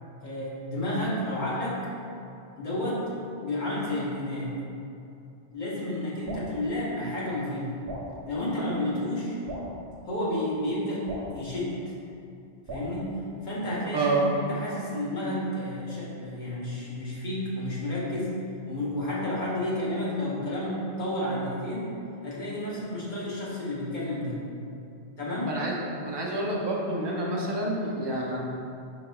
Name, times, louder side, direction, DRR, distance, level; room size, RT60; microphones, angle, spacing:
voice 1, 0.2-1.8 2.6-3.1 3.4-4.5 5.5-7.7 8.2-9.4 10.1-11.1 11.3-11.9 12.7-13.2 13.4-18.3 18.7-22.0 22.2-24.4 25.2-25.6, left 1 dB, 45° left, -7 dB, 1.1 m, -31 dB
Drip, 6.2-6.5 7.9-8.1 9.5-9.7 11.1-11.3 12.7-12.9, right 2 dB, 65° right, 0.9 m, -37 dB
voice 2, 13.9-14.2 25.4-25.7 26.0-28.4, right 2 dB, 40° right, -3 dB, 0.4 m, -28 dB
4.7 x 3.9 x 2.3 m, 2.6 s
omnidirectional pair, 1.1 m